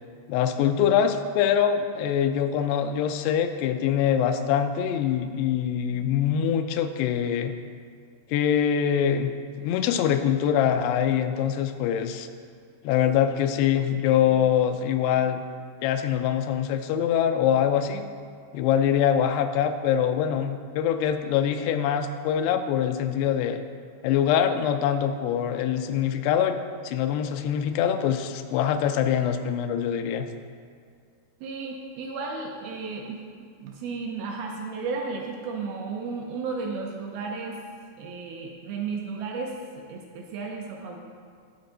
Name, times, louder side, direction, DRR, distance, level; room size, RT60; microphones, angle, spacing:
voice 1, 0.3-7.5 8.3-12.3 12.8-15.4 15.8-18.1 18.5-23.6 24.0-26.6 26.8-30.3, left 9 dB, 90° left, 8 dB, 2.6 m, -24 dB
voice 2, 31.4-33.2 33.6-37.6 38.0-39.6 39.9-41.0, right 4 dB, 80° right, 1 dB, 2.2 m, -33 dB
12.5 x 4.6 x 3.9 m, 2.1 s
omnidirectional pair, 4.7 m